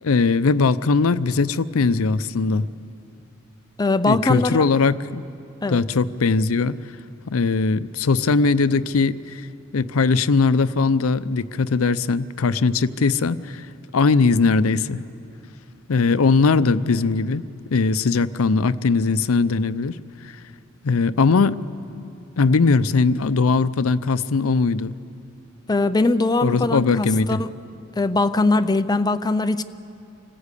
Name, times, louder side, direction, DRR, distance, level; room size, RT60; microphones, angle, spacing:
voice 1, 0.0-2.7 4.0-5.2 5.7-6.8 7.3-9.4 9.7-13.7 13.9-15.0 15.9-17.4 17.7-20.0 20.2-20.4 20.8-21.6 22.4-24.9 26.4-27.4, left 4 dB, 80° left, 14 dB, 0.6 m, -20 dB
voice 2, 3.8-4.6 5.6-5.8 25.7-27.4 28.0-29.6, left 2 dB, 20° left, 11 dB, 0.5 m, -21 dB
26.0 x 15.0 x 8.3 m, 2.6 s
head